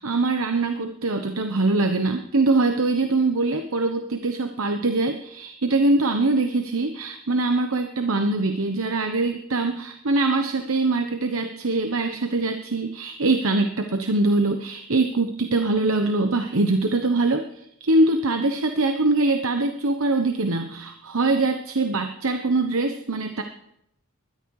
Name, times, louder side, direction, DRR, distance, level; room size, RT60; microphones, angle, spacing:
voice 1, 0.0-17.4 17.8-23.4, right 2 dB, 80° right, 6 dB, 1.0 m, -23 dB
20.5 x 13.0 x 4.8 m, 0.79 s
head